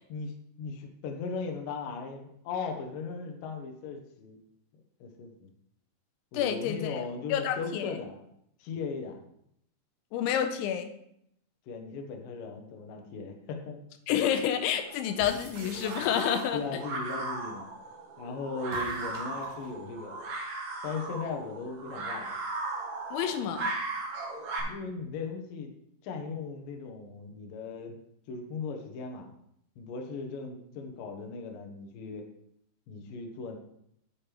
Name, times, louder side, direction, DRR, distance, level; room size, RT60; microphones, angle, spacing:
voice 1, 0.1-4.4 5.0-5.5 6.3-8.2 8.6-9.2 11.7-13.8 16.5-17.7 18.2-20.2 20.8-22.4 24.6-25.7 26.0-28.0 28.3-29.3 29.8-32.3 32.9-33.6, left 4 dB, 70° left, 3 dB, 2.2 m, -38 dB
voice 2, 6.3-7.0 7.3-7.9 10.1-10.9 14.1-16.8 23.1-23.7, left 9 dB, 90° left, 8 dB, 3.1 m, -29 dB
sound 1, 14.7-24.6, right 3 dB, 55° right, 2.1 m, -37 dB
sound 2, 15.2-16.9 18.6-19.8, right 5 dB, 70° right, 3.1 m, -47 dB
9.3 x 9.1 x 3.4 m, 0.73 s
omnidirectional pair, 5.3 m